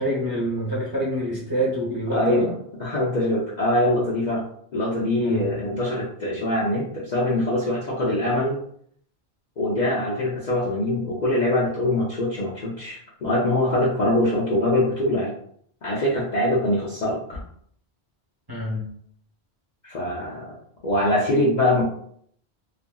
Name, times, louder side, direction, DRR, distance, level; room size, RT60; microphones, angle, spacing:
voice 1, 0.0-2.5 5.2-5.6 18.5-18.8, right 1 dB, 25° right, -7 dB, 0.6 m, -26 dB
voice 2, 2.1-2.5 2.8-4.4 4.7-8.6 9.6-15.3 15.8-17.4 19.8-20.5 20.8-21.8, left 1 dB, 50° left, -6 dB, 0.6 m, -23 dB
2.7 x 2.6 x 2.2 m, 0.65 s
omnidirectional pair, 1.1 m